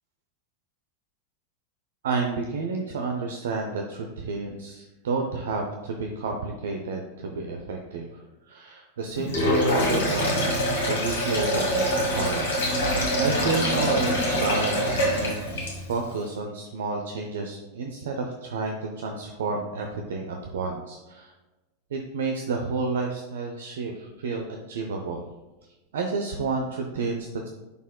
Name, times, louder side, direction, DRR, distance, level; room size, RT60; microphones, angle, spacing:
voice 1, 2.0-10.6 10.9-15.4 15.9-21.3 21.9-25.2 25.9-27.5, right 4 dB, 60° right, 3 dB, 0.6 m, -30 dB
Sink (filling or washing), 9.2-16.0, equal, 60° left, 1.9 m, -25 dB
10.0 x 4.2 x 2.3 m, 1.1 s
figure-of-eight pair, 90°, 0 cm